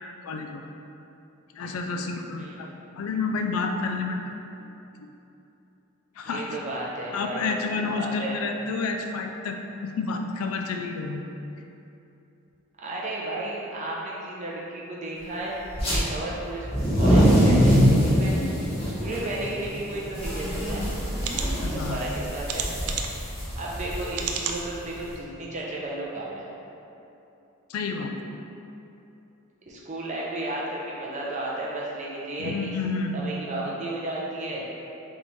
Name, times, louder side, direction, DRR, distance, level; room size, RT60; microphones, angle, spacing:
voice 1, 0.0-0.7 1.5-2.7 3.0-4.2 4.6-4.7 6.2-6.6 7.1-11.2 21.6-22.0 27.7-28.1 32.4-33.1, left 4 dB, 80° left, 4 dB, 0.3 m, -30 dB
voice 2, 2.3-2.6 6.2-7.5 7.8-8.4 12.8-15.5 15.9-16.7 17.0-18.3 18.8-21.0 21.7-22.7 23.5-26.5 29.7-32.7 33.1-34.6, right 2 dB, 35° right, -5 dB, 0.6 m, -33 dB
sound 1, 15.7-16.0 16.6-25.1, equal, 25° left, 1.1 m, -23 dB
sound 2, 20.4-20.5 21.2-21.5 22.5-23.2 24.1-24.6 25.2-25.3 25.6-25.7, right 7 dB, 80° right, 0.4 m, -31 dB
3.5 x 3.2 x 3.9 m, 2.9 s
head